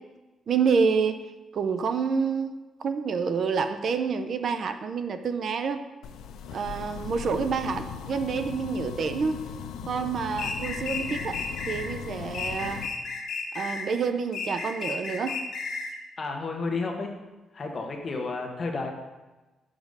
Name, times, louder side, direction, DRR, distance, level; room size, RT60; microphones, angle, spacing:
voice 1, 0.5-1.2 1.5-5.8 6.5-9.4 9.9-11.4 11.7-12.8 13.5-15.4, right 5 dB, 50° right, 9 dB, 0.4 m, -28 dB
sound 1, 6.0-12.9, left 7 dB, 85° left, 0.4 m, -38 dB
sound 2, 10.4-11.8 12.3-13.9 14.3-15.9, left 4 dB, 70° left, 1.2 m, -33 dB
voice 2, 16.2-17.2 17.5-18.9, left 3 dB, 35° left, 2 dB, 1.0 m, -31 dB
6.3 x 5.1 x 5.3 m, 1.1 s
cardioid pair, 135°, 0 cm